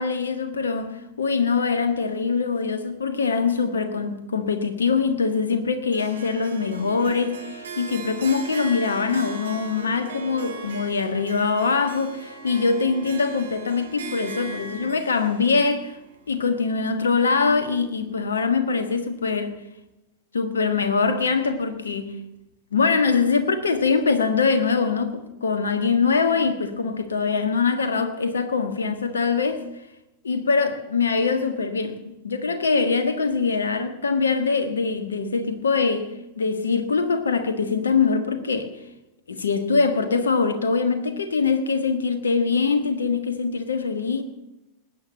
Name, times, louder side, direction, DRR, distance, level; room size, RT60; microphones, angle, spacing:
voice 1, 0.0-16.0 16.3-19.6 20.3-22.2 22.7-29.7 30.2-38.7 39.3-44.2, left 5 dB, 70° left, 1.5 m, -23 dB
Harp, 5.9-17.2, right 4 dB, 65° right, 2.5 m, -39 dB
20.0 x 8.8 x 7.4 m
figure-of-eight pair, 90°, 0 cm